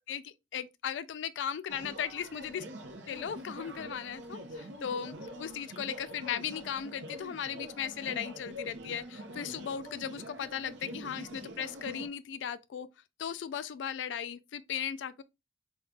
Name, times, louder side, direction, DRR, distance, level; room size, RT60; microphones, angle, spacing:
voice 1, 0.1-2.7 3.1-12.9 13.2-15.2, left 8 dB, 75° left, 0.3 m, -37 dB
sound 1, 1.7-12.1, right 1 dB, 80° right, 0.7 m, -45 dB
5.1 x 2.3 x 2.3 m
head